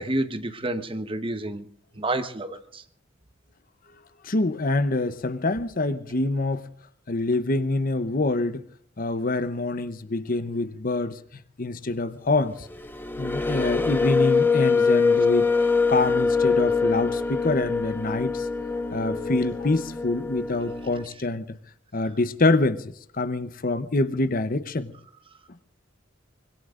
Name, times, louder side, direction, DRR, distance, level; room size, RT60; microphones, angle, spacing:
voice 1, 0.0-1.6 2.0-2.8, right 1 dB, 25° right, 1.1 m, -29 dB
voice 2, 4.2-6.6 7.1-8.6 9.0-11.2 11.6-12.7 13.2-15.5 15.9-18.5 18.9-21.6 21.9-24.9, left 2 dB, 45° left, 0.8 m, -25 dB
sound 1, 12.6-21.0, left 4 dB, 10° left, 1.0 m, -24 dB
25.0 x 21.5 x 2.5 m
head